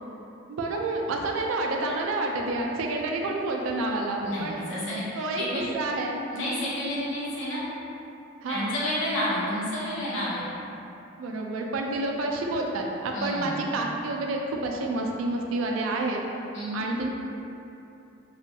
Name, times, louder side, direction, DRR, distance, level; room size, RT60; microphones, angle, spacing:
voice 1, 0.5-4.6 5.2-5.4 5.7-6.2 8.4-8.7 11.2-16.2 16.7-17.1, right 2 dB, 90° right, 1 dB, 0.3 m, -29 dB
voice 2, 4.2-5.0 5.4-5.6 6.3-7.6 8.5-10.4 13.1-13.6 16.5-16.8, left 1 dB, 75° left, -8 dB, 0.8 m, -30 dB
2.4 x 2.2 x 2.7 m, 2.8 s
head